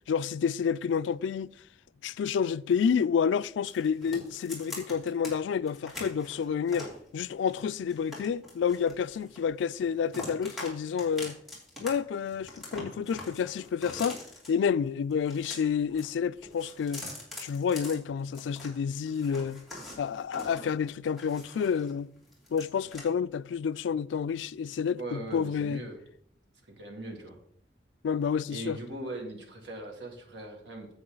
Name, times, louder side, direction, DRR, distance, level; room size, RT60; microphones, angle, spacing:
voice 1, 0.1-1.5 2.0-6.9 7.1-11.4 11.8-14.2 14.5-17.1 17.4-19.6 20.0-22.1 22.5-25.8 28.0-28.8, left 7 dB, 85° left, 0.3 m, -29 dB
sound 1, 3.7-5.3 5.7-7.0 7.5-9.5 9.8-10.7 11.0-11.9 12.2-14.5 15.1-16.1 16.4-18.7 19.1-21.9 22.2-23.0, left 1 dB, ahead, 2.8 m, -43 dB
voice 2, 25.0-26.0 26.8-27.4 28.5-30.9, right 1 dB, 80° right, 2.1 m, -40 dB
9.7 x 7.8 x 3.9 m
head